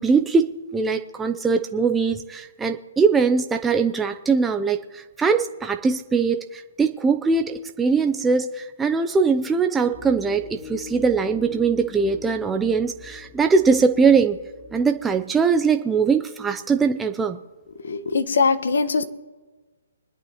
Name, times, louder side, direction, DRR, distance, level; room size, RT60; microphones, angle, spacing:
voice 1, 0.0-14.4 14.7-17.4, right 5 dB, 10° right, 6 dB, 0.5 m, -21 dB
sound 1, 9.9-15.2, left 4 dB, 35° left, 4.1 m, -43 dB
voice 2, 17.7-19.0, left 4 dB, 70° left, 10 dB, 1.2 m, -22 dB
25.0 x 11.0 x 3.0 m, 1.3 s
hypercardioid pair, 160°, 0 cm